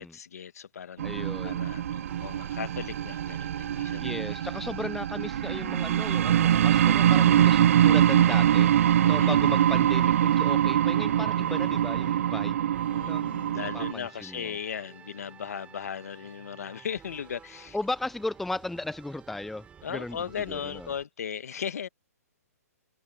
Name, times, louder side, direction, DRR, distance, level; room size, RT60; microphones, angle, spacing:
voice 1, 0.0-4.5 9.2-9.9 12.9-17.8 19.8-21.9, left 8 dB, 70° left, 1.5 m, -37 dB
voice 2, 1.0-1.8 4.0-8.7 9.0-12.7 13.0-13.2 13.5-14.6 17.7-20.2 20.5-20.9, left 2 dB, ahead, 0.5 m, -36 dB
sound 1, 1.0-13.9, right 10 dB, 60° right, 0.7 m, -23 dB
sound 2, 2.1-21.1, right 7 dB, 15° right, 6.9 m, -53 dB
hypercardioid pair, 140°, 9 cm